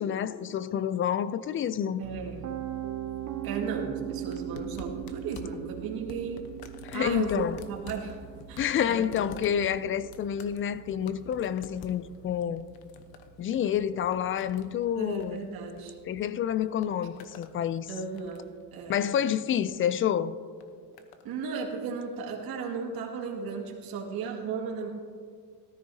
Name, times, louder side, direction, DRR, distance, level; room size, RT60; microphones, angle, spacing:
voice 1, 0.0-2.1 6.8-7.6 8.6-12.7 13.4-15.4 16.1-17.9 18.9-20.3, left 9 dB, 35° left, 0.4 m, -28 dB
Piano, 2.0-13.9, right 11 dB, 55° right, 0.8 m, -40 dB
voice 2, 2.0-2.4 3.4-6.4 6.9-8.2 8.5-9.1 14.9-16.0 17.9-19.0 21.2-24.9, right 5 dB, 80° right, 2.2 m, -35 dB
sound 1, 4.3-16.2 16.5-17.5 17.9-18.6 19.5-19.8 20.6-21.3 22.1-22.2, left 6 dB, 85° left, 1.0 m, -49 dB
18.0 x 13.5 x 2.8 m
cardioid pair, 140°, 36 cm